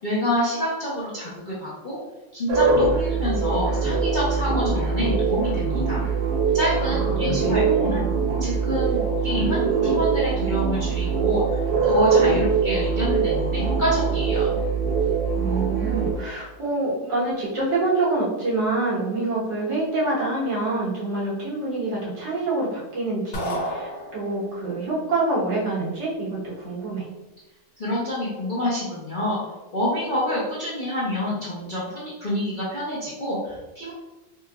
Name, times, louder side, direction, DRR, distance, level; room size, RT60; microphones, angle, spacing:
voice 1, 0.0-2.0 2.3-6.1 6.5-8.1 8.4-14.5 27.8-29.4 29.7-33.9, equal, 45° left, -8 dB, 0.6 m, -27 dB
sound 1, 2.5-16.1, right 5 dB, 55° right, 0.7 m, -22 dB
voice 2, 6.8-8.1 15.3-27.1, right 2 dB, 85° right, -7 dB, 2.0 m, -26 dB
sound 2, 23.3-24.6, equal, 75° left, 1.7 m, -31 dB
4.3 x 2.8 x 2.4 m, 1.0 s
omnidirectional pair, 1.9 m